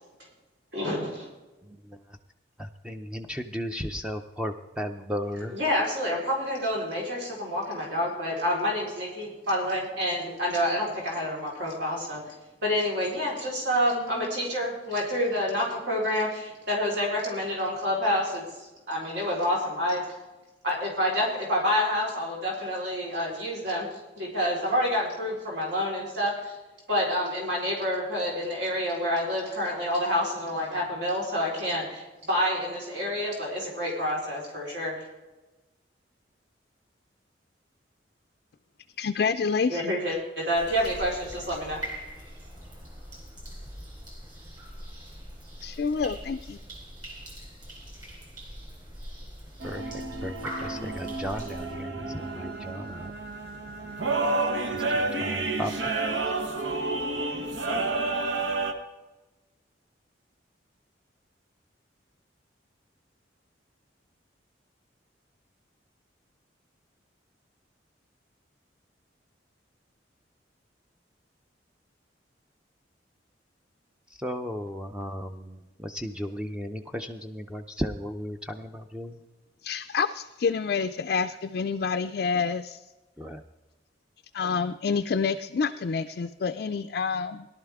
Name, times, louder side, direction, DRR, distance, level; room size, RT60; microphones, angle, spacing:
voice 1, 0.7-1.3 5.5-12.2 12.6-20.0 20.6-23.9 24.2-26.6 26.9-34.9 39.7-41.8, left 1 dB, 70° right, -3 dB, 4.1 m, -28 dB
voice 2, 1.6-2.2 2.6-5.6 49.6-49.9 50.2-50.3 50.6-53.1 54.7-55.9 74.2-79.2 83.2-83.4, equal, 5° right, 5 dB, 0.5 m, -35 dB
voice 3, 39.0-40.0 45.6-46.6 79.6-82.8 84.3-87.5, left 5 dB, 55° left, 9 dB, 0.4 m, -28 dB
sound 1, 40.5-51.8, right 1 dB, 25° right, 3.7 m, -42 dB
sound 2, 49.6-58.7, right 3 dB, 90° right, 1.2 m, -30 dB
Bowed string instrument, 51.9-56.4, right 4 dB, 55° right, 1.4 m, -41 dB
18.0 x 11.5 x 3.5 m, 1.1 s
head